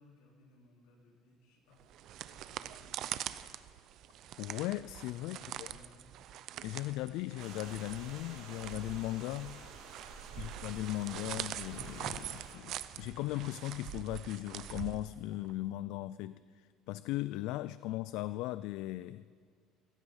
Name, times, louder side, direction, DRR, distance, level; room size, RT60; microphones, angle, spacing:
voice 1, 0.0-1.8 2.3-3.3 5.2-6.0 10.3-10.6, left 2 dB, 85° left, 4.3 m, -62 dB
sound 1, 1.8-15.5, right 12 dB, 55° right, 0.6 m, -44 dB
voice 2, 4.4-5.4 6.6-9.6 10.4-19.2, left 16 dB, 70° left, 0.3 m, -38 dB
sound 2, 7.4-12.5, right 5 dB, 70° right, 3.4 m, -50 dB
16.0 x 15.0 x 5.6 m
cardioid pair, 145°, 0 cm